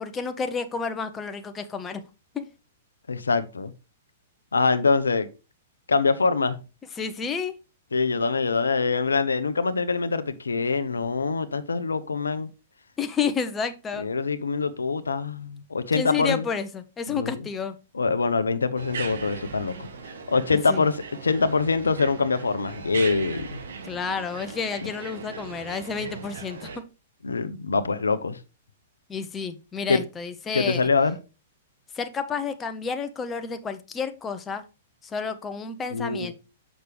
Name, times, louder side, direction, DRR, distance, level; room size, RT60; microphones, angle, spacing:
voice 1, 0.0-2.0 2.3-2.5 7.0-7.5 13.0-14.0 15.9-17.8 20.7-20.8 23.8-26.7 29.1-30.8 31.9-34.6 35.0-36.3, left 5 dB, 20° left, 0.8 m, -30 dB
voice 2, 3.1-3.7 4.5-5.3 5.9-6.6 7.9-12.5 14.0-16.4 17.1-17.4 17.9-19.8 20.3-23.6 27.2-28.4 29.9-30.0 30.5-31.2 35.9-36.3, left 4 dB, 85° left, 0.6 m, -24 dB
sound 1, 18.8-26.8, right 5 dB, 70° right, 1.1 m, -38 dB
6.6 x 6.0 x 3.3 m
hypercardioid pair, 115°, 0 cm